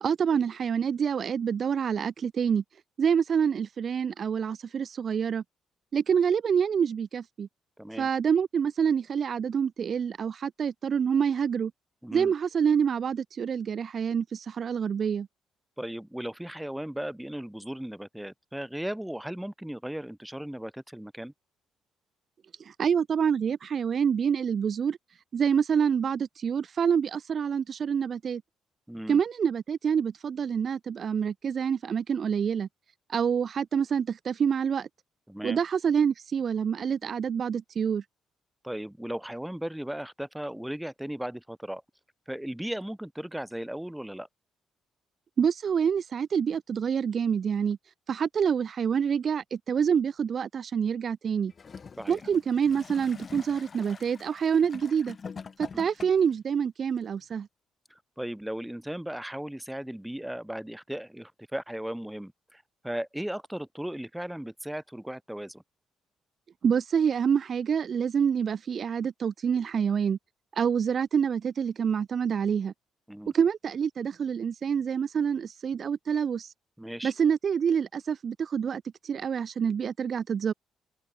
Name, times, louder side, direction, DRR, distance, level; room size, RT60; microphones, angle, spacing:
voice 1, 0.0-2.6 3.0-5.4 5.9-7.5 8.0-11.7 12.1-15.3 22.6-25.0 25.3-28.4 29.1-32.7 33.1-34.9 35.4-38.0 45.4-47.8 48.1-51.5 52.1-55.2 55.6-57.5 66.6-70.2 70.5-72.7 73.3-76.5 77.0-80.5, right 7 dB, 50° right, 0.5 m, -27 dB
voice 2, 7.8-8.1 12.0-12.3 15.8-21.3 28.9-29.2 35.3-35.6 38.6-41.8 42.3-44.3 52.0-52.2 55.7-55.9 57.9-65.6 73.1-73.3 76.8-77.1, right 1 dB, 5° right, 2.4 m, -36 dB
Gurgling / Toilet flush, 51.5-56.4 57.2-57.3, left 5 dB, 40° left, 5.2 m, -44 dB
cardioid pair, 90°, 0 cm